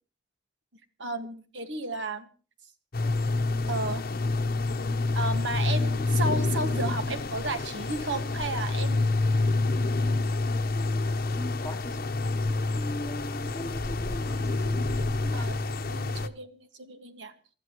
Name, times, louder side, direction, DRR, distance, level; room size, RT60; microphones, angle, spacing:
voice 1, 1.0-2.3 3.7-4.0 5.1-9.1 15.3-17.3, right 2 dB, 80° right, 8 dB, 1.6 m, -33 dB
sound 1, 2.9-16.3, left 3 dB, 55° left, 0.9 m, -28 dB
voice 2, 10.6-12.3 12.7-15.7, equal, 15° left, 7 dB, 1.0 m, -41 dB
28.5 x 13.5 x 3.0 m, 0.37 s
head